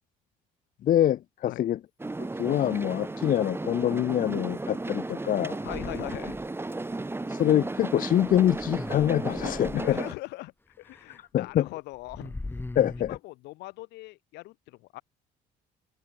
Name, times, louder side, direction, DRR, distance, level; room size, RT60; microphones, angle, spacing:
voice 1, 0.8-1.8 2.4-5.6 7.3-10.0 11.3-11.7 12.8-13.2, left 11 dB, 55° left, 0.8 m, -25 dB
sound 1, 2.0-10.1, right 2 dB, 15° right, 3.3 m, -34 dB
voice 2, 5.6-6.4 9.7-10.5 10.8-12.4 13.1-15.0, left 20 dB, 90° left, 3.1 m, -40 dB
sound 2, 5.6-6.7 8.2-10.0 10.9-11.2 11.5-11.6 11.9-13.2, left 2 dB, 10° left, 1.8 m, -41 dB
cardioid pair, 110°, 17 cm